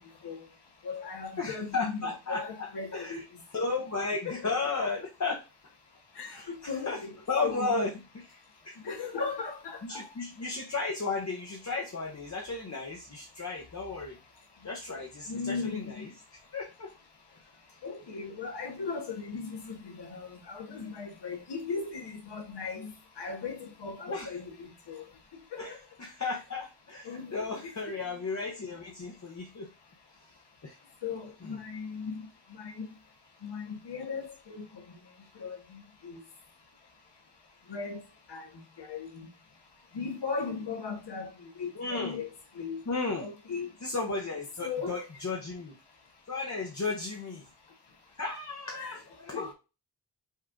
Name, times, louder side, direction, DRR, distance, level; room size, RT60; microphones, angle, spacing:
voice 1, 0.8-2.0 2.3-3.2 4.2-4.5 6.2-7.1 7.4-7.8 8.8-10.0 15.3-16.0 17.8-22.9 23.2-24.5 24.9-25.0 25.5-25.6 27.0-27.5 31.0-32.2 32.6-32.7 33.4-34.6 35.4-35.6 36.0-36.2 37.7-38.0 38.3-38.5 38.8-39.1 39.9-41.3 41.6-42.3 42.6-42.8 43.2-43.7 44.6-45.1 48.7-49.0 49.3-49.5, left 5 dB, 75° left, 1.0 m, -37 dB
voice 2, 1.4-3.2 3.5-5.4 6.2-7.0 7.3-8.4 8.6-9.0 9.8-14.2 14.6-16.1 16.5-16.9 24.1-24.3 25.6-29.7 30.6-30.8 31.4-31.5 41.8-42.2 42.9-43.3 43.8-45.8 46.3-47.5 48.2-49.5, left 3 dB, 40° left, 0.7 m, -34 dB
5.4 x 2.4 x 3.7 m
wide cardioid pair, 85°, 41 cm